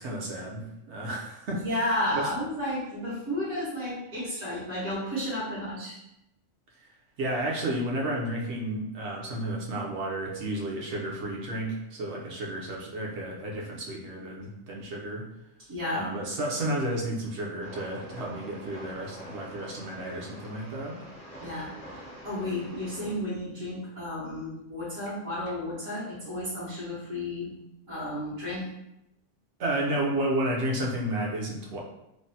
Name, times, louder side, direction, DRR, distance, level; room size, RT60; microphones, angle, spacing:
voice 1, 0.0-1.6 2.1-2.3 7.2-15.3 15.9-21.0 29.6-31.8, right 1 dB, 65° right, -2 dB, 0.9 m, -32 dB
voice 2, 1.5-6.0 15.7-16.1 21.4-27.5 27.9-28.7, left 1 dB, 80° right, -13 dB, 1.5 m, -32 dB
Train, 17.6-23.1, equal, 50° left, 0.6 m, -45 dB
3.2 x 2.1 x 2.6 m, 0.87 s
omnidirectional pair, 1.4 m